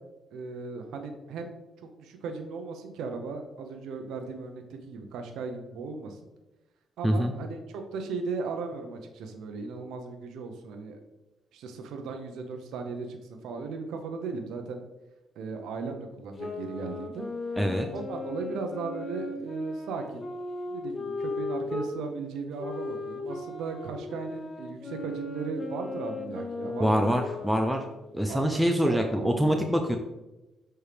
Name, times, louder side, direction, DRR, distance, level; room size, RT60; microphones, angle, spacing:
voice 1, 0.3-1.5 2.0-6.2 7.0-11.0 11.5-14.8 15.4-17.2 17.9-20.3 20.7-27.2 28.3-29.6, right 4 dB, 85° right, 5 dB, 0.7 m, -37 dB
sound 1, 16.4-21.9 22.6-28.1, left 3 dB, 30° left, 0.9 m, -36 dB
voice 2, 17.6-17.9 26.8-27.8 28.1-30.0, equal, ahead, 4 dB, 0.5 m, -25 dB
6.6 x 4.4 x 3.3 m, 1.0 s
cardioid pair, 90°, 0 cm